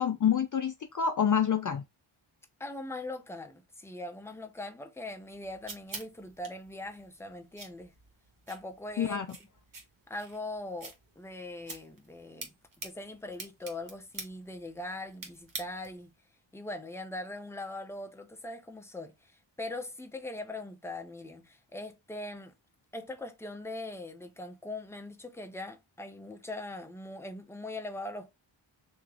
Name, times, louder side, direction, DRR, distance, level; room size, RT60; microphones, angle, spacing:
voice 1, 0.0-1.8 9.0-9.3, left 8 dB, 40° left, 0.4 m, -27 dB
voice 2, 2.6-7.9 8.5-9.2 10.1-12.5 12.8-16.1 16.5-19.3 19.6-22.5 22.9-28.3, left 2 dB, 5° left, 0.7 m, -41 dB
sound 1, 5.1-16.1, right 3 dB, 40° right, 1.1 m, -47 dB
3.2 x 3.0 x 3.7 m
cardioid pair, 65°, 49 cm